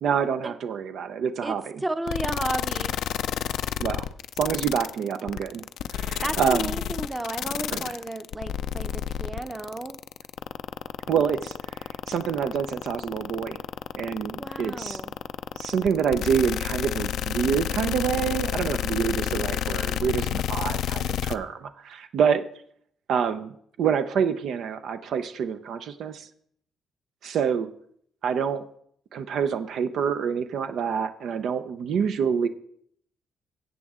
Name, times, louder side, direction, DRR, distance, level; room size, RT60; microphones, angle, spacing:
voice 1, 0.0-1.6 3.8-4.1 4.4-5.6 5.9-6.7 7.7-7.9 11.1-11.5 12.1-13.6 14.0-15.0 15.5-22.4 23.1-23.5 23.8-26.3 27.2-27.7 28.2-28.6 29.1-32.5, right 7 dB, 70° right, 10 dB, 0.6 m, -27 dB
voice 2, 1.4-3.0 6.2-10.0 14.4-15.1, right 1 dB, 15° right, 10 dB, 0.8 m, -33 dB
sound 1, 2.1-21.4, left 10 dB, 80° left, 0.4 m, -29 dB
14.0 x 8.1 x 3.7 m, 0.67 s
cardioid pair, 90°, 0 cm